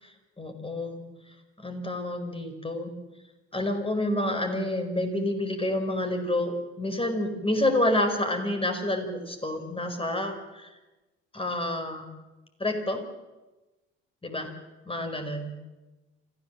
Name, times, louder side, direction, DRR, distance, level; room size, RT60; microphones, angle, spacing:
voice 1, 0.0-1.0 1.6-3.0 3.5-10.7 11.3-12.1 12.6-13.0 14.2-14.5 14.8-15.5, left 1 dB, 15° left, 5 dB, 4.8 m, -29 dB
27.0 x 15.5 x 7.5 m, 1.1 s
hypercardioid pair, 55°, 35 cm